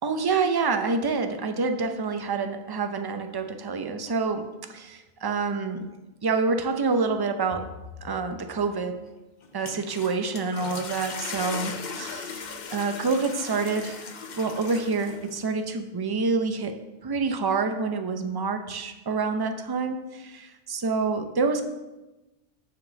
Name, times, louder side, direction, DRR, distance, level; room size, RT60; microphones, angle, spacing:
voice 1, 0.0-4.4 4.7-5.8 6.2-7.7 8.0-9.0 9.5-16.7 17.0-21.6, right 4 dB, 30° right, 6 dB, 0.5 m, -27 dB
sound 1, 9.4-15.5, left 5 dB, 50° left, 0.8 m, -38 dB
6.6 x 5.0 x 6.7 m, 1.1 s
omnidirectional pair, 1.0 m